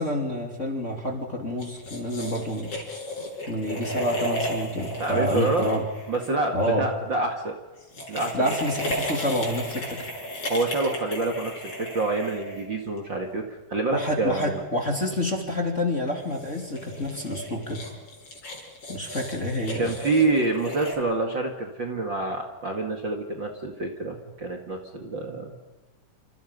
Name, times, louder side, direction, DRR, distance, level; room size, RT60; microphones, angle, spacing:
voice 1, 0.0-2.7 3.5-5.8 6.5-6.8 8.3-10.1 13.9-17.8 18.9-19.9, left 1 dB, 20° left, 2 dB, 3.0 m, -28 dB
sound 1, 1.6-6.7 7.8-13.0 16.2-21.0, equal, 45° left, 6.4 m, -34 dB
voice 2, 5.0-5.7 6.1-7.5 8.1-8.5 10.5-14.6 19.8-25.5, right 3 dB, 35° right, 3 dB, 2.5 m, -27 dB
28.5 x 27.5 x 5.4 m, 1.1 s
omnidirectional pair, 3.9 m